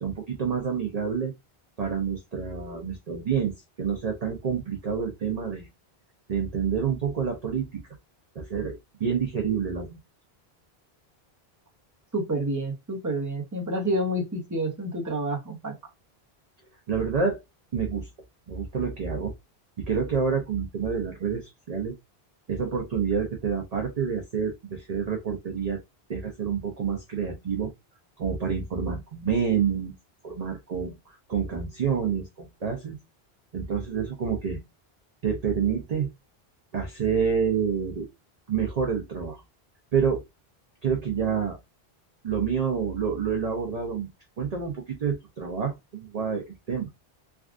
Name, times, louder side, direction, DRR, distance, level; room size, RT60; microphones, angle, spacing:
voice 1, 0.0-1.3 1.8-5.7 6.3-7.8 8.4-10.0 16.9-17.4 17.7-18.1 18.5-19.3 19.9-21.9 22.5-25.8 26.1-27.7 28.2-29.9 30.2-31.0 31.3-33.0 33.5-34.6 35.2-36.1 36.7-38.0 38.5-39.4 39.9-40.2 40.8-41.6 42.2-44.1 44.4-46.9, right 6 dB, 45° right, 0.6 m, -28 dB
voice 2, 12.1-15.7, right 1 dB, 20° right, 0.8 m, -29 dB
3.4 x 2.4 x 2.4 m
omnidirectional pair, 1.1 m